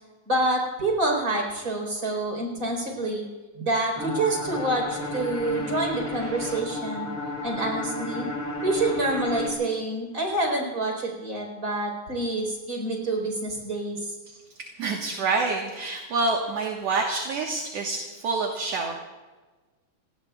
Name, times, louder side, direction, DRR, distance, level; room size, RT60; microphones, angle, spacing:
voice 1, 0.3-3.2 3.5-7.1 7.4-8.3 8.6-14.1, right 2 dB, 30° right, 1 dB, 4.7 m, -27 dB
sound 1, 3.9-9.5, left 1 dB, 5° right, 3.0 m, -32 dB
voice 2, 14.8-18.9, right 3 dB, 60° right, 0 dB, 2.4 m, -27 dB
29.5 x 19.0 x 2.4 m, 1.3 s
omnidirectional pair, 3.5 m